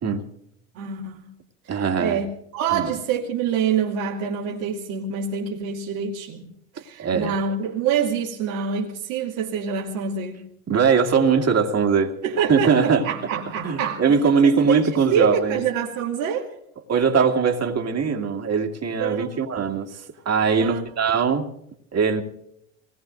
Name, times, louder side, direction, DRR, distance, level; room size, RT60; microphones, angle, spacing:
voice 1, 0.7-1.3 1.6-6.5 6.7-10.4 12.2-14.0 14.4-16.5 19.0-19.3 20.6-20.9, right 7 dB, 70° right, 2.7 m, -26 dB
voice 2, 1.7-2.2 2.7-2.9 7.0-7.3 10.7-12.1 12.5-13.1 13.6-15.6 16.9-21.5 21.9-22.2, right 5 dB, 40° right, 2.5 m, -21 dB
27.5 x 19.0 x 2.6 m
hypercardioid pair, 65°, 41 cm